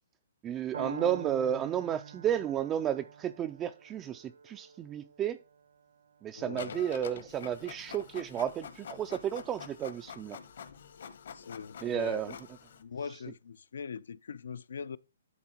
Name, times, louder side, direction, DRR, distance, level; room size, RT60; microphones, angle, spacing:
voice 1, 0.4-5.4 6.2-10.4 11.8-12.3, right 10 dB, 15° right, 0.3 m, -32 dB
Piano, 0.7-8.7, right 5 dB, 75° right, 1.0 m, -46 dB
voice 2, 6.3-6.8 11.3-12.2 12.8-15.0, left 6 dB, 75° left, 0.5 m, -41 dB
Printer, 6.6-12.8, left 7 dB, 60° left, 1.2 m, -47 dB
11.0 x 4.1 x 4.4 m
hypercardioid pair, 165°, 0 cm